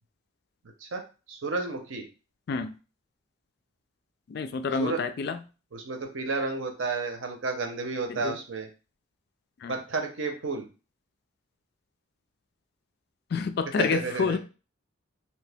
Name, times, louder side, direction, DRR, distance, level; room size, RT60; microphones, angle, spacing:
voice 1, 1.3-2.1 4.8-5.0 5.7-8.7 9.7-10.7 13.8-14.4, right 3 dB, 65° right, 0.7 m, -31 dB
voice 2, 4.3-5.4 8.1-8.4 9.6-9.8 13.3-14.4, left 5 dB, 50° left, 0.3 m, -28 dB
2.8 x 2.8 x 3.4 m
head